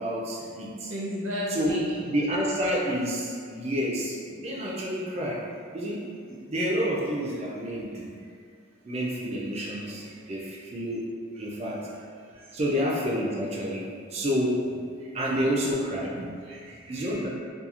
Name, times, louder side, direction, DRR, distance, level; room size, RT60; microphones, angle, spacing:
voice 1, 0.0-0.9 1.5-1.8 2.1-5.4 5.7-6.0 6.3-8.1 8.8-11.0 11.4-11.9 12.5-13.8 14.1-14.6 15.1-16.2 16.9-17.3, equal, 30° right, -4 dB, 0.4 m, -29 dB
voice 2, 0.9-2.1 9.8-10.6 11.4-11.5 12.3-12.5 15.0-15.4 16.2-17.2, equal, 70° right, -6 dB, 0.6 m, -36 dB
2.8 x 2.3 x 2.4 m, 2.2 s
head